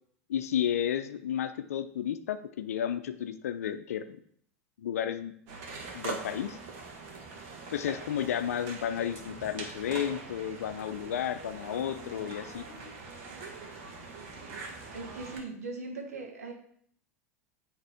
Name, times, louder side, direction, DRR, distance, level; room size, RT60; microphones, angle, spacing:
voice 1, 0.3-4.2 4.8-5.3 5.9-6.6 7.7-12.6, left 9 dB, 75° left, 10 dB, 0.5 m, -32 dB
sound 1, 5.5-15.4, right 4 dB, 55° right, 1.5 m, -43 dB
voice 2, 14.9-16.5, right 3 dB, 80° right, 2 dB, 1.3 m, -39 dB
9.0 x 3.3 x 3.5 m, 0.64 s
hypercardioid pair, 85°, 8 cm